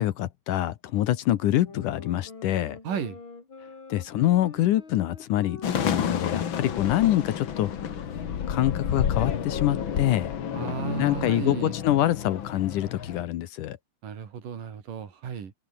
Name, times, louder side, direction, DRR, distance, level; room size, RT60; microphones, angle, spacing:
voice 1, 0.0-2.8 3.9-5.6 5.8-7.7 8.5-10.3 11.0-13.8, left 13 dB, 70° left, 2.4 m, -25 dB
sound 1, 1.6-11.3, left 4 dB, 35° left, 4.6 m, -45 dB
voice 2, 2.8-3.2 10.5-11.8 14.0-15.5, right 7 dB, 65° right, 4.6 m, -34 dB
sound 2, 5.6-13.2, left 8 dB, 50° left, 1.5 m, -30 dB
omnidirectional pair, 4.1 m